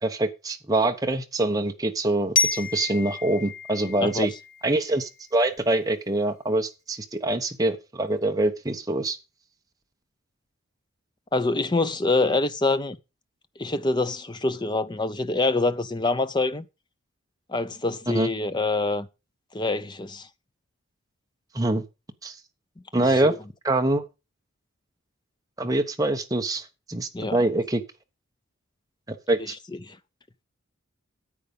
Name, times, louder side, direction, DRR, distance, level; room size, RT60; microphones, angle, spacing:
voice 1, 0.0-4.3 4.6-9.2 18.1-18.3 21.5-21.8 22.2-22.4 22.9-23.3 23.6-24.0 25.6-27.8 29.1-29.5, right 2 dB, 15° right, 1.0 m, -25 dB
Glockenspiel, 2.4-5.2, left 4 dB, 40° left, 1.2 m, -29 dB
voice 2, 11.3-13.0 13.6-16.7 17.5-19.1 19.5-20.3 23.1-23.4 27.1-27.4 29.5-29.6 29.8-30.0, left 3 dB, 20° left, 0.6 m, -25 dB
9.8 x 8.3 x 5.3 m
head